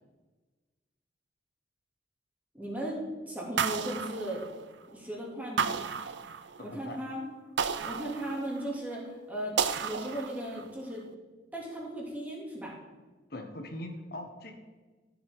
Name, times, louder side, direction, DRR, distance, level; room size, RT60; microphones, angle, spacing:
voice 1, 2.5-4.4 4.9-5.8 6.6-7.3 7.8-11.0 11.5-12.8, right 1 dB, 10° right, -4 dB, 2.4 m, -37 dB
sound 1, 3.6-4.9 5.6-6.8 7.6-8.8 9.6-10.7, right 6 dB, 70° right, 0.6 m, -33 dB
voice 2, 6.6-7.0 13.3-14.5, left 1 dB, 55° left, 4 dB, 1.4 m, -41 dB
14.0 x 7.7 x 3.7 m, 1.3 s
head